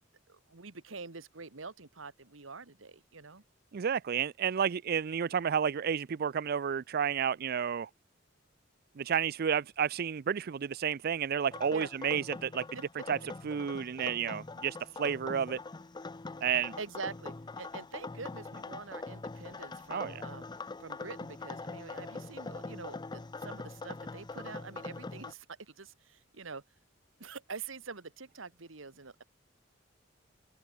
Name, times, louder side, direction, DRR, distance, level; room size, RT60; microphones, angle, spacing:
voice 1, 0.3-3.4 11.7-11.9 12.7-12.8 16.8-20.4 20.8-26.6 27.2-29.2, right 4 dB, 85° right, 1.7 m, -45 dB
voice 2, 3.7-7.9 9.0-12.6 13.1-13.2 13.4-15.6 16.4-16.7 19.9-20.2, right 7 dB, 50° right, 0.4 m, -31 dB
sound 1, 11.5-25.3, left 3 dB, 20° left, 0.5 m, -43 dB
open air
head